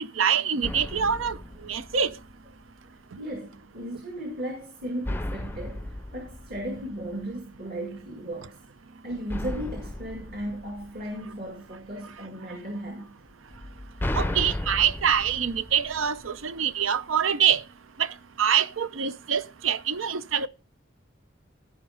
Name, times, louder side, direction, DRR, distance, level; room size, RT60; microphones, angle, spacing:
voice 1, 0.0-1.4 1.7-2.1 14.1-17.6 18.0-18.1 18.4-20.5, right 8 dB, 90° right, 0.7 m, -25 dB
sound 1, 0.6-2.5 5.0-7.5 9.3-11.6 13.5-16.6, left 1 dB, 10° left, 0.5 m, -35 dB
voice 2, 3.2-8.6 9.0-13.1, right 1 dB, 50° right, 2.2 m, -36 dB
15.0 x 5.2 x 5.0 m
head